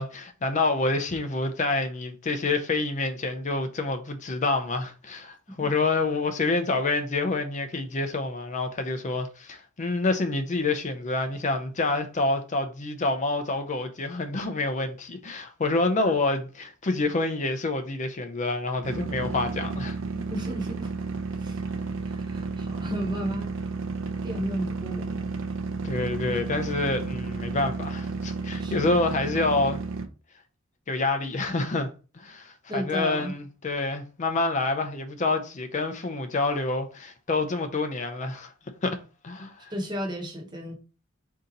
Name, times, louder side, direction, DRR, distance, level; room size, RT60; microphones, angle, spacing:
voice 1, 0.0-20.0 25.8-29.8 30.9-38.5 38.8-39.0 39.2-39.7, left 3 dB, 35° left, 0.5 m, -27 dB
sound 1, 18.8-30.1, right 3 dB, 65° right, 0.5 m, -32 dB
voice 2, 20.3-20.9 21.4-21.6 22.0-23.5 24.2-25.4 26.3-26.5 28.6-28.7 32.7-33.4 39.7-40.8, equal, 20° right, 0.9 m, -33 dB
3.8 x 2.8 x 3.9 m
head